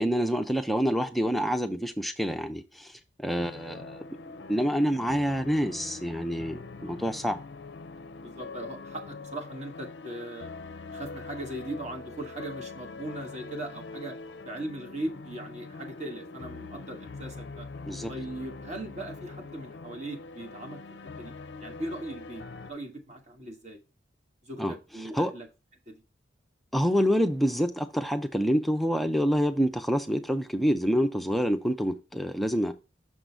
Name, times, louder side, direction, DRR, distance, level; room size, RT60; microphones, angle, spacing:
voice 1, 0.0-7.4 17.9-18.1 24.6-24.8 25.0-25.3 26.7-32.7, equal, ahead, 0.5 m, -27 dB
sound 1, 3.4-22.7, left 3 dB, 60° left, 0.5 m, -43 dB
voice 2, 6.8-7.1 8.2-10.5 10.9-14.2 14.4-17.7 18.1-20.8 21.2-21.3 21.6-23.8 24.4-25.5 25.9-26.0, right 1 dB, 35° right, 1.4 m, -39 dB
6.2 x 3.9 x 4.5 m
head